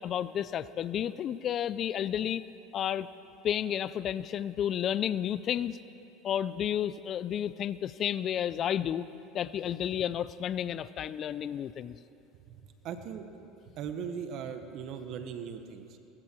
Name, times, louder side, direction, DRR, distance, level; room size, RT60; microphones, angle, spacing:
voice 1, 0.0-2.4 2.7-3.1 3.4-5.8 6.2-9.0 9.3-12.0, left 10 dB, 45° left, 16 dB, 0.5 m, -31 dB
voice 2, 12.5-13.2 13.8-16.0, right 7 dB, 55° right, 8 dB, 1.4 m, -39 dB
19.0 x 15.5 x 4.7 m, 2.8 s
supercardioid pair, 100°, 0 cm